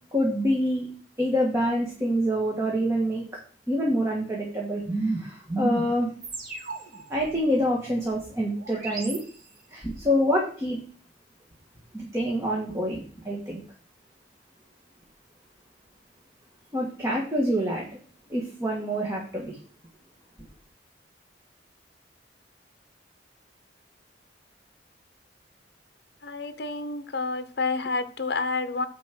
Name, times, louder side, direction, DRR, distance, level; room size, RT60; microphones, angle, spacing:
voice 1, 0.1-0.9 1.2-3.2 3.7-6.1 7.1-9.2 9.7-10.8 11.9-13.6 16.7-18.0 18.3-19.6, equal, 15° right, -2 dB, 1.6 m, -26 dB
sound 1, 6.2-9.9, right 3 dB, 50° right, 2.5 m, -41 dB
voice 2, 26.2-28.9, left 3 dB, 60° left, 10 dB, 0.8 m, -29 dB
9.3 x 4.3 x 6.0 m, 0.44 s
head